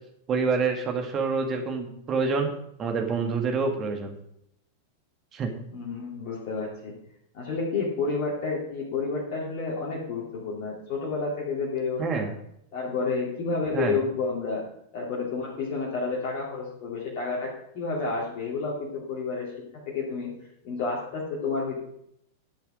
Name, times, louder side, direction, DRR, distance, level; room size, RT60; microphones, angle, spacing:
voice 1, 0.3-2.5 2.8-4.1 5.3-5.5 12.0-12.3 13.7-14.0, right 4 dB, 30° right, 3 dB, 2.0 m, -27 dB
voice 2, 5.7-6.9 7.3-12.2 12.7-14.6 14.9-20.3 20.6-21.8, left 4 dB, 45° left, -5 dB, 2.5 m, -30 dB
12.0 x 7.0 x 5.0 m, 0.75 s
figure-of-eight pair, 90°, 0 cm